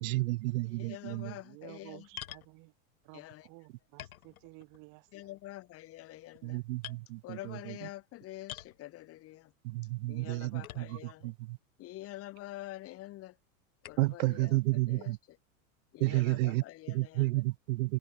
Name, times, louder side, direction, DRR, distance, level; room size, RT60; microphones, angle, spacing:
voice 1, 0.0-1.3 6.4-7.8 9.6-11.6 14.0-15.2 16.0-18.0, right 21 dB, 80° right, 0.5 m, -31 dB
voice 2, 0.7-2.1 3.1-3.5 5.1-6.6 7.2-9.5 10.1-11.3 11.8-13.4 13.8-15.4 15.9-17.4, left 16 dB, 35° left, 0.7 m, -47 dB
voice 3, 1.4-2.7 3.0-5.1, right 28 dB, 55° right, 1.7 m, -53 dB
sound 1, 2.2-2.5 3.4-3.5 4.0-4.8 5.2-5.6 6.2-6.5 6.8-7.0 8.5-8.8 10.6-11.2 11.9-12.0 13.8-14.1, left 13 dB, 90° left, 2.7 m, -46 dB
open air
hypercardioid pair, 110°, 41 cm